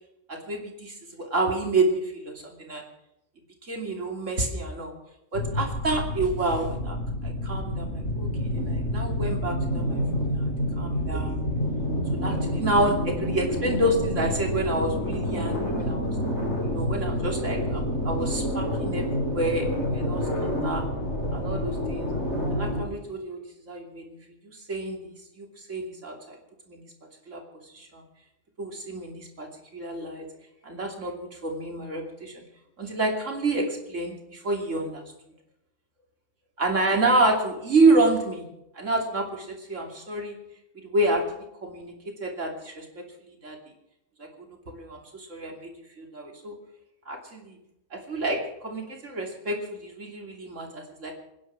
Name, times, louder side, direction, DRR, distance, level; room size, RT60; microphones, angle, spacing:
voice 1, 0.3-2.9 3.6-4.9 5.3-7.0 7.2-10.5 10.8-11.4 12.1-16.1 16.7-19.1 19.3-20.8 21.3-22.1 22.5-23.4 23.7-24.2 24.4-26.4 26.7-26.8 27.3-27.4 27.7-28.0 28.6-30.3 30.6-32.4 32.8-35.0 36.6-38.4 38.7-40.4 40.8-41.9 42.2-42.9 43.4-43.6 44.2-44.3 44.7-45.7 46.0-46.6 47.1-47.6 47.9-51.1, right 2 dB, 75° right, 1 dB, 3.2 m, -28 dB
sound 1, 5.3-22.8, equal, 60° left, 4.6 m, -28 dB
26.0 x 10.0 x 4.7 m, 0.84 s
omnidirectional pair, 1.3 m